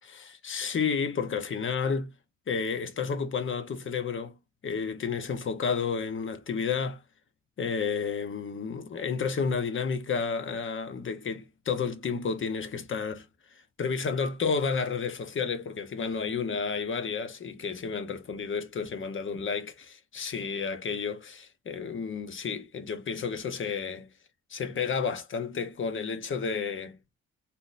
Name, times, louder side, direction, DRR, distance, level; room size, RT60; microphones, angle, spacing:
voice 1, 0.0-2.1 2.5-4.3 4.6-7.0 7.6-13.3 13.8-24.1 24.5-27.0, left 5 dB, 40° left, 0.9 m, -31 dB
3.6 x 2.7 x 2.5 m
cardioid pair, 90°, 30 cm